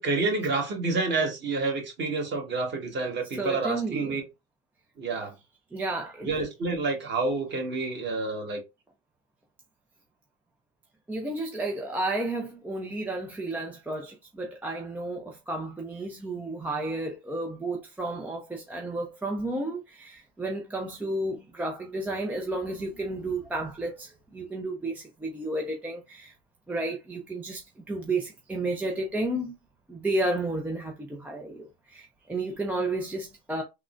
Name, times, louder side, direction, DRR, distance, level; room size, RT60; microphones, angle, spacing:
voice 1, 0.0-4.2 5.0-5.3 6.2-8.6, right 3 dB, 30° right, 1.3 m, -28 dB
voice 2, 3.4-4.2 5.7-6.4 11.1-26.3 26.7-29.5 29.9-33.6, right 2 dB, 5° right, 0.3 m, -32 dB
3.6 x 2.1 x 2.4 m
supercardioid pair, 110°, 35 cm